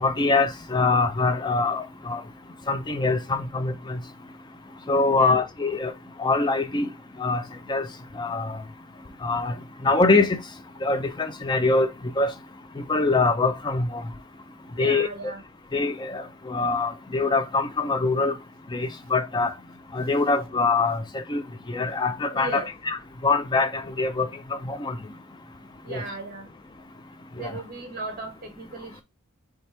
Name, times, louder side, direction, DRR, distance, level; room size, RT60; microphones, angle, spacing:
voice 1, 0.0-2.2 2.7-4.0 4.9-5.9 6.2-6.9 7.2-7.4 7.7-7.9 8.2-8.6 9.2-9.5 9.8-10.4 10.8-11.9 12.2-12.3 12.9-14.0 14.8-15.1 15.7-18.3 18.7-19.5 19.9-21.4 21.7-23.0 23.2-24.3 24.6-25.0 25.9-26.0 27.4-27.5, left 3 dB, 20° left, 0.4 m, -23 dB
voice 2, 5.1-5.4 14.7-15.4 22.3-22.7 25.8-26.5 27.3-29.0, right 3 dB, 45° right, 1.2 m, -36 dB
3.3 x 3.3 x 4.2 m
head